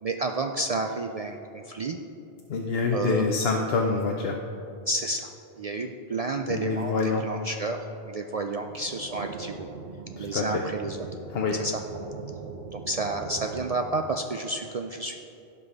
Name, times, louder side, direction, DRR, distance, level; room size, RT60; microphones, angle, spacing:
voice 1, 0.0-2.0 2.9-3.3 4.9-5.3 5.6-9.7 10.2-11.0 11.5-11.8 12.7-15.2, right 2 dB, 60° right, 4 dB, 0.3 m, -31 dB
voice 2, 2.5-4.4 6.5-7.2 10.2-10.6 11.3-11.5, left 4 dB, 65° left, 1 dB, 0.9 m, -26 dB
sound 1, 8.6-13.8, right 5 dB, 80° right, 1.2 m, -39 dB
16.0 x 5.5 x 4.0 m, 2.7 s
omnidirectional pair, 1.1 m